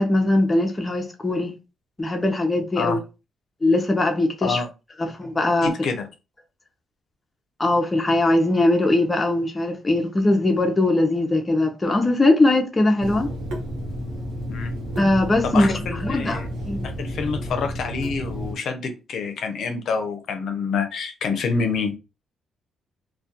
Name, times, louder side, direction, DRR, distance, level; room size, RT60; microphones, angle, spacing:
voice 1, 0.0-1.5 2.0-3.0 3.6-4.6 5.0-5.7 7.6-13.3 15.0-15.7 16.0-16.8, left 2 dB, 20° left, 0.5 m, -20 dB
voice 2, 5.6-6.1 14.5-14.7 15.4-16.5 17.0-21.9, left 5 dB, 70° left, 0.5 m, -27 dB
Water tap faucet / Sink (filling or washing), 13.0-18.5, equal, 90° right, 0.8 m, -31 dB
2.3 x 2.1 x 2.7 m
cardioid pair, 90°, 0 cm